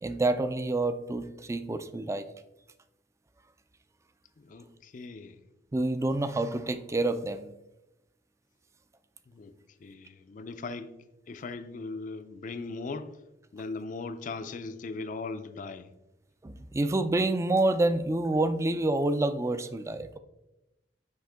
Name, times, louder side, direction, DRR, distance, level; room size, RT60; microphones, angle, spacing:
voice 1, 0.0-2.2 5.7-7.5 16.4-20.2, right 2 dB, 15° right, 0.3 m, -28 dB
voice 2, 4.5-5.4 9.3-9.5 9.8-10.9 11.3-13.1 13.5-15.9, left 3 dB, 45° left, 0.4 m, -38 dB
6.4 x 5.0 x 3.4 m
head